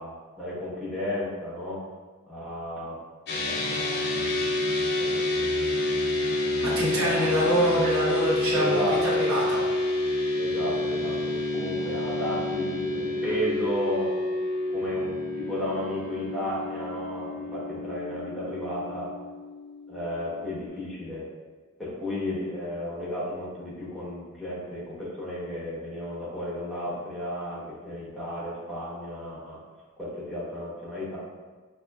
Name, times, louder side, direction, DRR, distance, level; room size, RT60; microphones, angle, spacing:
voice 1, 0.0-1.8 2.3-3.0 3.4-5.7 6.9-7.5 8.5-9.2 10.3-14.1 14.7-19.1 19.9-21.3 21.8-29.6 30.0-31.2, left 1 dB, ahead, -8 dB, 1.0 m, -33 dB
sound 1, 3.3-20.7, left 2 dB, 50° left, 0.6 m, -29 dB
voice 2, 6.6-9.6, equal, 80° right, -5 dB, 1.1 m, -25 dB
5.3 x 2.7 x 2.3 m, 1.4 s
head